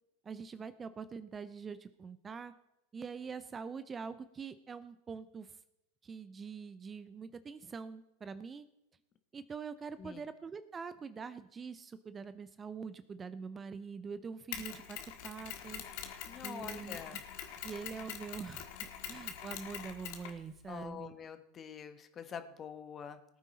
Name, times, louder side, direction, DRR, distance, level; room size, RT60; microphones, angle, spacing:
voice 1, 0.2-2.5 2.9-5.6 6.0-8.7 9.3-15.9 16.4-17.0 17.6-18.7 19.1-21.1, right 5 dB, 25° right, 13 dB, 0.6 m, -44 dB
Mechanisms, 14.5-20.8, left 10 dB, 60° left, 1.6 m, -44 dB
voice 2, 16.3-17.2 20.7-23.2, left 7 dB, 30° left, 9 dB, 1.3 m, -46 dB
19.0 x 9.1 x 4.2 m, 0.85 s
hypercardioid pair, 90°, 0 cm